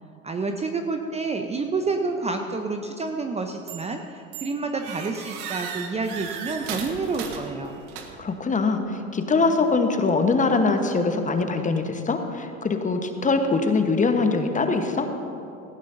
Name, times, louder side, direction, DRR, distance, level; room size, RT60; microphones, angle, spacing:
voice 1, 0.2-7.7, right 3 dB, 15° right, 4 dB, 0.7 m, -29 dB
sound 1, 3.7-4.0 4.3-8.4, right 7 dB, 55° right, 1.6 m, -36 dB
voice 2, 8.2-15.1, left 3 dB, 20° left, 6 dB, 1.1 m, -23 dB
18.5 x 15.0 x 2.7 m, 2.9 s
hypercardioid pair, 80°, 41 cm